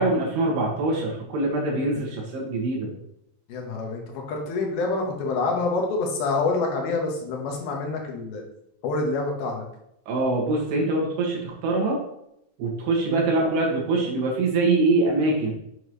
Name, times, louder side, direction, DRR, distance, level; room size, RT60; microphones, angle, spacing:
voice 1, 0.0-2.9 10.1-12.0 12.6-15.5, right 2 dB, 85° right, -2 dB, 4.1 m, -24 dB
voice 2, 3.5-4.0 4.3-8.4 8.8-9.7 13.1-13.3, left 3 dB, 75° left, 1 dB, 3.1 m, -27 dB
8.2 x 7.2 x 3.2 m, 0.78 s
omnidirectional pair, 4.6 m